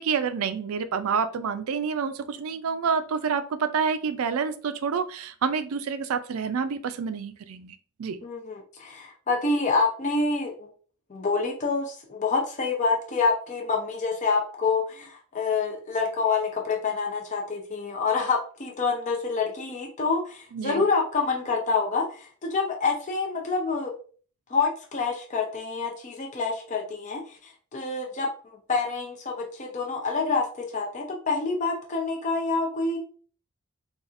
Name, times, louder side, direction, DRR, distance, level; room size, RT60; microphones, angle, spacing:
voice 1, 0.0-8.2 20.5-20.8, right 6 dB, 70° right, 11 dB, 0.4 m, -28 dB
voice 2, 8.2-10.7 11.1-23.9 24.5-33.0, left 4 dB, 35° left, 1 dB, 0.5 m, -27 dB
4.1 x 2.4 x 2.4 m, 0.42 s
head